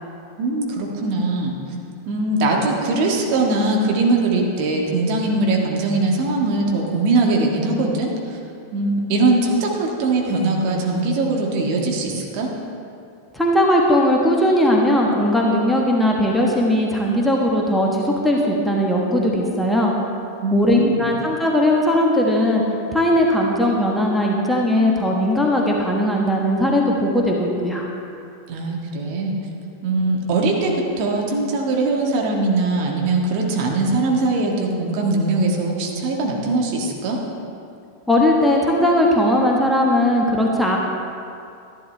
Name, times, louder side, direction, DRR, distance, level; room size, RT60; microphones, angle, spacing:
voice 1, 0.4-1.5 2.0-8.4 8.7-12.5 20.4-21.1 28.5-29.3 29.8-37.2, right 2 dB, 45° right, -1 dB, 1.6 m, -21 dB
voice 2, 13.3-19.9 20.5-22.6 22.9-27.8 38.1-40.8, left 1 dB, 5° left, -2 dB, 1.3 m, -18 dB
12.5 x 11.5 x 3.3 m, 2.5 s
figure-of-eight pair, 90°, 0 cm